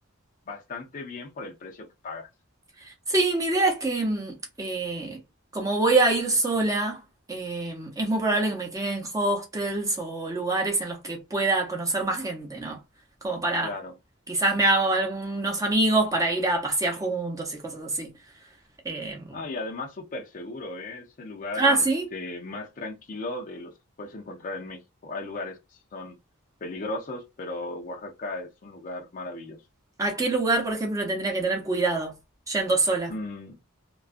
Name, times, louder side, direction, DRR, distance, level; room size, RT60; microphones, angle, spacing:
voice 1, 0.5-2.3 13.6-14.0 19.3-21.9 22.1-26.2 26.6-29.6 33.1-33.6, left 2 dB, 40° left, 0.5 m, -36 dB
voice 2, 3.1-5.2 5.5-7.0 7.3-12.8 13.2-13.7 14.3-18.1 18.8-19.2 21.6-22.0 30.0-32.1 32.5-33.1, right 2 dB, 15° right, 0.6 m, -25 dB
2.3 x 2.2 x 2.4 m
head